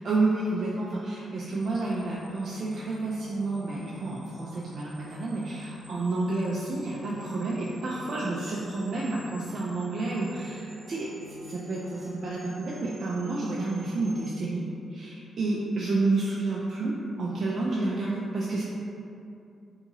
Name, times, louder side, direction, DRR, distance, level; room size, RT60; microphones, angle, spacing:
voice 1, 0.0-14.6 14.9-18.6, right 2 dB, 65° right, -6 dB, 0.3 m, -30 dB
sound 1, 1.5-14.4, left 3 dB, 25° right, 0.6 m, -49 dB
2.8 x 2.5 x 2.8 m, 2.6 s
cardioid pair, 65°, 0 cm